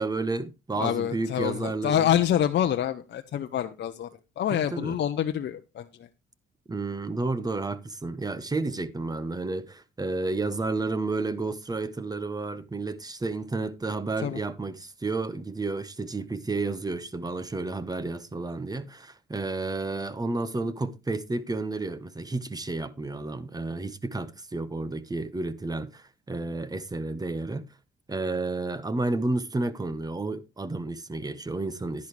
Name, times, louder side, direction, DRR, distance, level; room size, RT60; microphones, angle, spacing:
voice 1, 0.0-2.1 4.5-5.0 6.7-27.7 28.1-32.1, right 3 dB, 20° right, 1.2 m, -31 dB
voice 2, 0.7-4.1 4.4-6.1 14.2-14.4, left 10 dB, 60° left, 0.8 m, -26 dB
11.0 x 10.5 x 3.3 m
cardioid pair, 90°, 20 cm